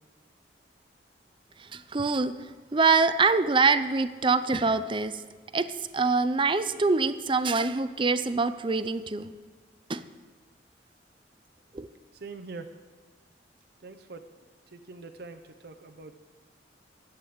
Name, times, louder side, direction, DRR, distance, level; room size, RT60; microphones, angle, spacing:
voice 1, 1.7-2.3 2.7-5.1 5.5-9.3 9.9-10.0 11.7-11.9, right 4 dB, 30° right, 12 dB, 0.5 m, -24 dB
voice 2, 12.1-12.7 13.8-14.2 14.7-16.1, right 3 dB, 60° right, 6 dB, 0.7 m, -43 dB
11.0 x 8.2 x 8.6 m, 1.4 s
head